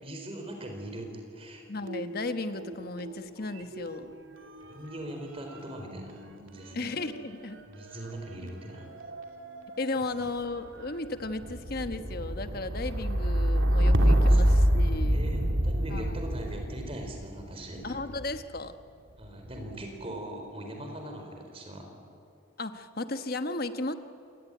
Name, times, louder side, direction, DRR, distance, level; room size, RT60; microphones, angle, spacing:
voice 1, 0.0-1.6 4.7-6.2 6.4-6.9 7.7-8.9 9.9-10.3 14.0-14.6 15.1-18.0 19.2-21.9, right 1 dB, 30° right, 3 dB, 4.5 m, -41 dB
voice 2, 1.7-4.1 6.7-7.6 9.8-15.2 15.9-16.0 17.8-18.7 22.6-23.9, left 2 dB, 50° left, 9 dB, 1.2 m, -35 dB
sound 1, 1.8-3.2 3.4-18.5 19.2-19.8, equal, 80° right, 2.6 m, -28 dB
27.5 x 18.5 x 9.3 m, 2.6 s
head